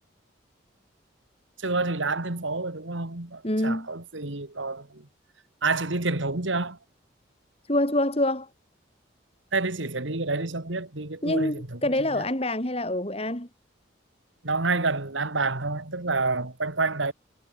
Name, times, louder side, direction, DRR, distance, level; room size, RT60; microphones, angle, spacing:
voice 1, 1.6-5.1 5.6-6.8 9.5-12.3 14.4-17.1, right 3 dB, 80° right, 2.4 m, -28 dB
voice 2, 3.4-3.9 7.7-8.5 11.2-13.5, left 1 dB, 30° left, 4.2 m, -26 dB
head